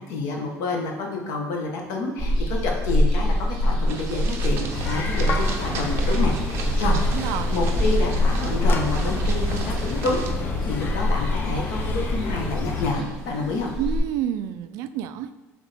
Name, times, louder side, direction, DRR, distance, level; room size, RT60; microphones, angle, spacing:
voice 1, 0.0-7.0 7.2-10.2 10.6-13.7, left 3 dB, 70° left, 1 dB, 1.2 m, -29 dB
sound 1, 2.2-14.0, equal, ahead, 1.4 m, -25 dB
sound 2, 3.9-10.3, right 4 dB, 45° right, 0.8 m, -36 dB
sound 3, 4.7-12.9, left 4 dB, 35° left, 0.6 m, -30 dB
voice 2, 7.1-7.5 13.8-15.3, right 11 dB, 65° right, 12 dB, 0.3 m, -29 dB
7.6 x 3.6 x 3.4 m, 1.2 s
cardioid pair, 170°, 6 cm